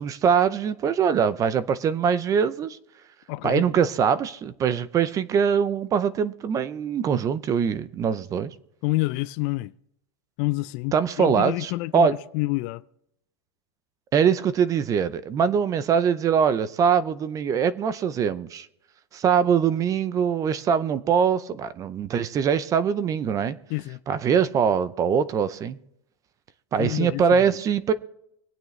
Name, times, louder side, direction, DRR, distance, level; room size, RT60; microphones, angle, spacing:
voice 1, 0.0-2.8 3.4-8.5 10.9-12.1 14.1-18.7 19.1-23.6 24.1-25.8 26.7-27.9, right 7 dB, 25° right, 0.5 m, -23 dB
voice 2, 3.3-3.7 8.8-9.7 10.4-12.8 23.7-24.0 26.8-27.6, left 21 dB, 45° left, 0.4 m, -28 dB
25.5 x 9.0 x 3.2 m
supercardioid pair, 140°, 14 cm